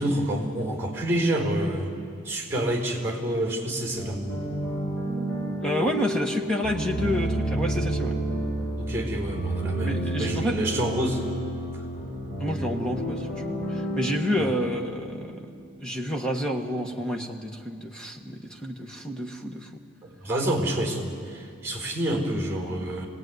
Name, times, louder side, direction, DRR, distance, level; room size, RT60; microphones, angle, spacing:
voice 1, 0.0-1.9 2.2-4.2 8.8-11.2 14.4-14.5 20.0-23.1, right 1 dB, 15° right, 1 dB, 4.1 m, -28 dB
sound 1, 4.0-15.7, right 1 dB, 60° left, 7.5 m, -30 dB
voice 2, 5.6-8.1 9.8-10.6 12.4-15.5 15.8-19.8, equal, 5° left, 1 dB, 1.4 m, -29 dB
26.0 x 18.5 x 9.5 m, 2.4 s
head